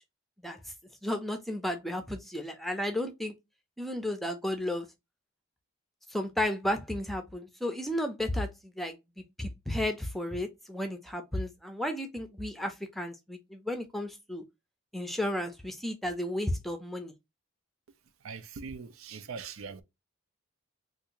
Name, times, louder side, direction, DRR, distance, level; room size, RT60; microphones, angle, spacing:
voice 1, 1.0-3.3 3.8-4.9 6.1-14.4 14.9-17.1, left 1 dB, ahead, 0.5 m, -33 dB
voice 2, 18.2-19.8, right 5 dB, 80° right, 0.5 m, -41 dB
3.6 x 2.5 x 2.9 m
head